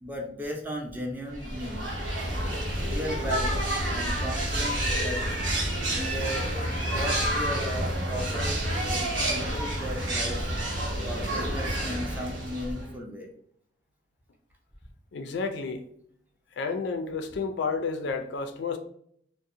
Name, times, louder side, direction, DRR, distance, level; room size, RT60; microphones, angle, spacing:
voice 1, 0.0-1.9 2.8-5.2 6.0-10.5 11.0-13.3, equal, 10° right, 0.5 m, -36 dB
sound 1, 1.3-12.9, right 1 dB, 75° right, 0.9 m, -29 dB
voice 2, 15.1-15.9 16.6-18.8, left 4 dB, 65° left, 0.3 m, -31 dB
2.6 x 2.0 x 2.5 m
head